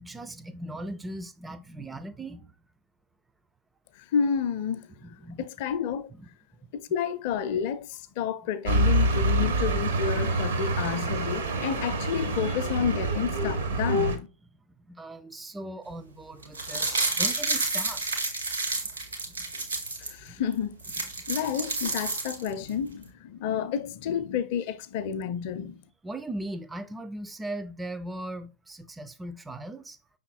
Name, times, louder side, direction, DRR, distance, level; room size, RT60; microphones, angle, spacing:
voice 1, 0.0-2.5 5.0-5.5 6.1-6.3 14.7-18.1 18.8-18.9 19.3-19.5 20.3-20.4 26.0-30.0, right 1 dB, 10° right, 0.4 m, -39 dB
voice 2, 4.0-4.9 5.4-6.1 6.7-14.3 20.0-20.7 21.3-25.8, left 7 dB, 50° left, 0.5 m, -30 dB
sound 1, 8.7-14.2, right 2 dB, 65° right, 0.8 m, -26 dB
sound 2, 16.4-20.1 20.5-20.6 20.8-22.7 23.0-23.1, right 3 dB, 80° right, 1.2 m, -30 dB
5.7 x 3.6 x 2.3 m
figure-of-eight pair, 90°, 0 cm